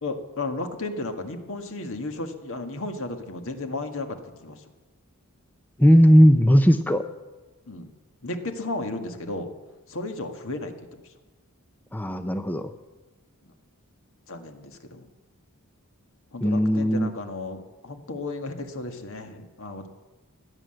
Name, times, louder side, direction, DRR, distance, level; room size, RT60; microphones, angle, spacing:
voice 1, 0.0-4.6 7.7-7.9 8.2-9.5 9.9-11.0 13.5-13.6 14.3-15.1 16.3-19.9, left 2 dB, 65° left, 6 dB, 1.8 m, -34 dB
voice 2, 5.8-7.0 11.9-12.7 16.4-17.1, equal, 10° left, 9 dB, 0.6 m, -17 dB
16.5 x 11.0 x 7.8 m, 1.2 s
head